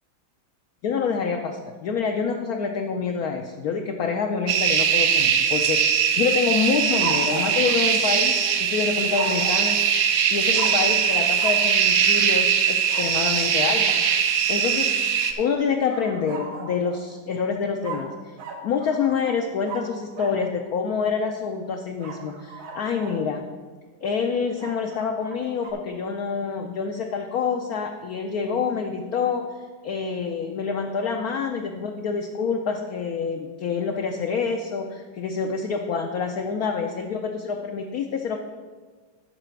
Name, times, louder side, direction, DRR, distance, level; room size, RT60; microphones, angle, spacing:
voice 1, 0.8-9.8 10.3-14.0 14.5-18.1 18.6-23.4 24.0-29.4 29.8-38.4, left 6 dB, 70° left, 3 dB, 0.9 m, -27 dB
sound 1, 4.5-15.3, right 7 dB, 65° right, 0.7 m, -21 dB
sound 2, 7.0-8.6 9.1-9.7 10.5-10.9 11.4-11.7 12.9-13.4 15.9-17.1 17.8-20.4 22.0-23.2 24.6-25.7, right 4 dB, 85° right, 1.9 m, -36 dB
10.0 x 6.5 x 4.5 m, 1.4 s
omnidirectional pair, 2.2 m